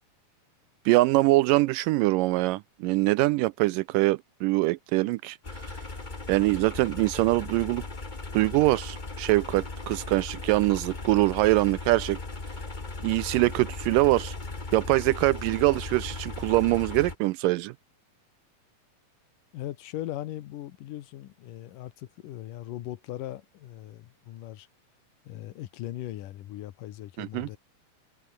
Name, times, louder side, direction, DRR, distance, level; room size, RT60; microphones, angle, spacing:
voice 1, 0.9-5.4 5.6-5.8 6.3-7.8 8.3-12.2 13.0-14.4 14.7-17.7 27.2-27.5, right 20 dB, 85° right, 1.9 m, -23 dB
sound 1, 5.4-17.1, left 3 dB, 25° left, 1.0 m, -37 dB
voice 2, 19.5-24.7 25.3-27.6, left 14 dB, 70° left, 2.6 m, -39 dB
omnidirectional pair, 4.3 m